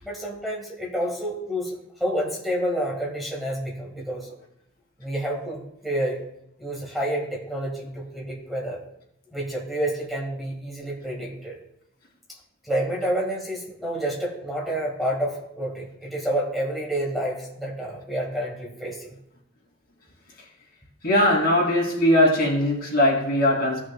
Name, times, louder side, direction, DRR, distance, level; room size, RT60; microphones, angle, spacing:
voice 1, 0.0-1.7 2.0-4.3 5.0-6.2 6.6-8.8 9.3-11.6 12.6-19.2, right 1 dB, ahead, -3 dB, 2.0 m, -29 dB
voice 2, 21.0-23.8, left 1 dB, 55° left, -3 dB, 3.0 m, -20 dB
15.5 x 6.1 x 2.3 m, 0.81 s
head